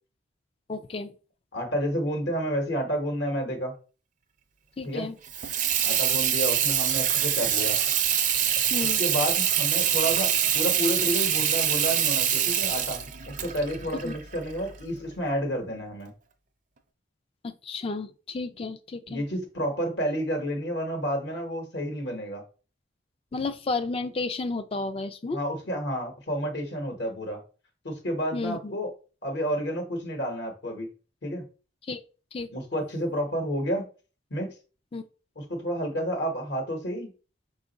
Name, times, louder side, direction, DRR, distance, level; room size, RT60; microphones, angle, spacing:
voice 1, 0.7-1.2 4.8-5.2 8.7-9.0 14.0-14.1 17.4-19.2 23.3-25.4 28.3-28.7 31.8-32.0 32.3-32.5 34.9-35.0, left 3 dB, 30° left, 0.3 m, -32 dB
voice 2, 1.5-3.7 4.8-5.1 5.8-7.8 9.0-16.1 19.1-22.4 25.3-27.4 27.8-28.9 29.2-30.9 31.2-31.4 32.5-33.9 34.3-34.5 35.4-37.1, equal, 65° left, 1.1 m, -30 dB
Water tap faucet / Sink (filling or washing), 5.2-14.8, right 9 dB, 40° right, 0.5 m, -25 dB
5.0 x 2.4 x 4.0 m
head